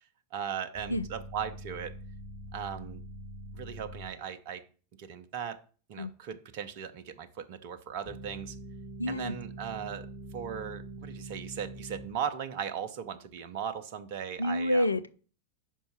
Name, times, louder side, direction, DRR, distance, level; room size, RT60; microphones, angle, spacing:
voice 1, 0.3-1.9 2.5-3.0 3.5-4.6 5.0-5.6 5.9-8.6 9.1-10.1 10.3-14.9, right 8 dB, 50° right, 0.6 m, -38 dB
sound 1, 0.7-4.1 8.0-12.1, right 1 dB, 10° left, 1.1 m, -44 dB
voice 2, 9.0-9.4 14.4-15.2, left 1 dB, 80° left, 0.4 m, -28 dB
5.4 x 4.5 x 5.8 m
figure-of-eight pair, 90°, 0 cm